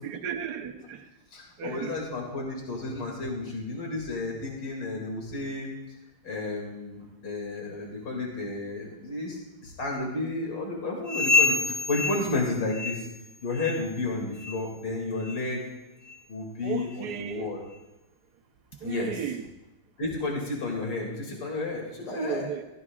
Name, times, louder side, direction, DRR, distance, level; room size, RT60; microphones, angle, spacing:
voice 1, 0.0-1.0 1.6-2.0 16.6-17.5 18.8-19.5 22.1-22.6, right 8 dB, 60° right, 6 dB, 1.2 m, -34 dB
voice 2, 1.3-5.7 6.2-9.4 9.6-13.1 13.4-15.6 16.3-17.6 18.8-19.2 20.0-22.5, left 2 dB, 60° left, -1 dB, 3.1 m, -32 dB
sound 1, 11.0-13.3 13.5-13.9 14.4-14.6 15.2-15.4 16.1-16.2 16.9-17.0, left 4 dB, 30° right, 1.1 m, -27 dB
17.0 x 14.5 x 2.4 m, 0.97 s
omnidirectional pair, 2.2 m